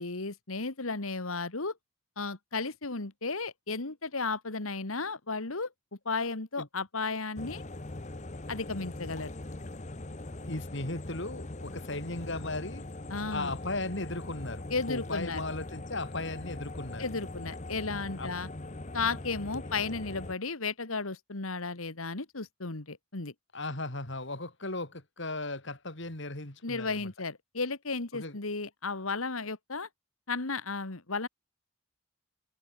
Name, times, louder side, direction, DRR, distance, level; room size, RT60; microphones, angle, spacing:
voice 1, 0.0-1.7 2.2-5.7 6.1-7.6 8.5-9.3 13.1-13.5 14.7-15.4 17.0-18.5 18.9-23.3 26.6-29.9 30.3-31.3, left 4 dB, 80° left, 2.0 m, -34 dB
sound 1, 7.4-20.4, left 2 dB, 35° left, 1.1 m, -41 dB
voice 2, 10.4-12.8 13.3-17.1 18.2-18.4 23.5-27.1 28.1-28.4, left 2 dB, 60° left, 3.5 m, -37 dB
head